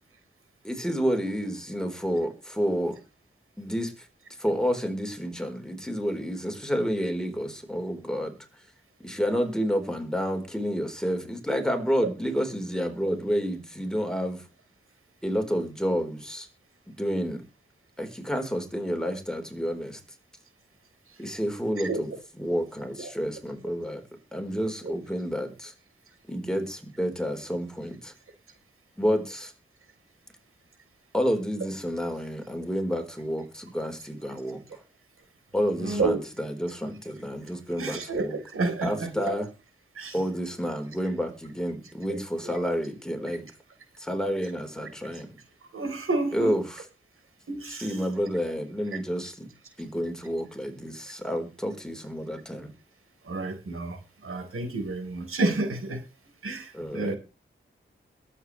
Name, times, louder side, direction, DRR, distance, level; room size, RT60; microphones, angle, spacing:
voice 1, 0.6-3.0 3.6-3.9 4.4-8.3 9.0-14.4 15.2-16.5 17.0-17.4 18.0-20.0 21.2-24.0 24.3-25.7 26.3-28.1 29.0-29.5 31.1-34.6 35.5-38.4 38.8-39.5 40.1-43.4 44.0-45.3 46.3-46.8 47.7-49.5 49.8-52.7 56.7-57.2, equal, 5° left, 5 dB, 4.1 m, -29 dB
voice 2, 35.8-36.2 37.8-39.1 40.0-40.2 42.1-42.2 42.4-42.6 45.1-45.2 45.7-46.6 47.5-48.0 53.2-56.0 56.4-57.1, right 3 dB, 85° right, 6 dB, 3.9 m, -30 dB
22.0 x 8.3 x 3.2 m, 0.31 s
wide cardioid pair, 90°, 21 cm